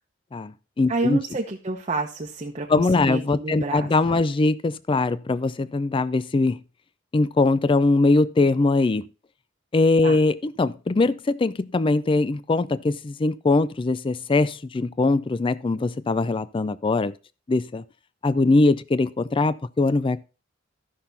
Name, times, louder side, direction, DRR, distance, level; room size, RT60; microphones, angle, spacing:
voice 1, 0.3-1.2 2.7-6.6 7.1-9.1 9.7-17.1 17.5-17.8 18.2-20.2, left 3 dB, 25° left, 0.4 m, -21 dB
voice 2, 0.9-4.2 10.0-10.2, right 3 dB, 35° right, 0.8 m, -29 dB
13.5 x 5.9 x 4.0 m
head